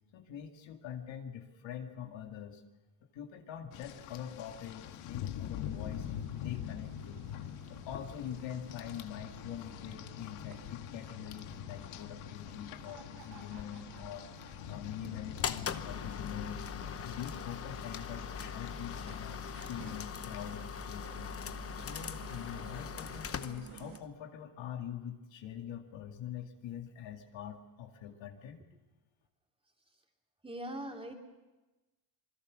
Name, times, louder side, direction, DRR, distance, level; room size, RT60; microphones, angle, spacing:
voice 1, 0.1-2.6 3.1-7.2 7.7-16.7 17.0-21.3 21.8-28.6, left 9 dB, 60° left, 4 dB, 2.3 m, -44 dB
Rain, 3.7-20.0, left 11 dB, 80° left, 1.7 m, -44 dB
sound 1, 5.6-24.0, right 10 dB, 85° right, 1.9 m, -54 dB
sound 2, 15.4-24.1, left 7 dB, 30° left, 0.9 m, -41 dB
voice 2, 30.4-31.1, right 1 dB, 10° right, 2 dB, 3.1 m, -41 dB
27.0 x 21.0 x 6.3 m, 1.1 s
cardioid pair, 120°, 50 cm